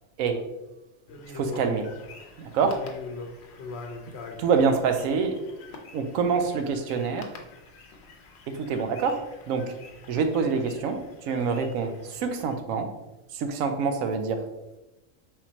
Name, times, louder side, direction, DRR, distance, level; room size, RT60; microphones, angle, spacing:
sound 1, 1.1-12.5, left 3 dB, 60° left, 0.8 m, -43 dB
voice 1, 1.3-1.9 2.4-2.9 4.4-5.4 5.9-7.3 8.5-9.7 10.1-12.9 13.3-14.4, right 5 dB, 85° right, 7 dB, 1.0 m, -26 dB
4.5 x 3.6 x 2.8 m, 0.99 s
omnidirectional pair, 1.4 m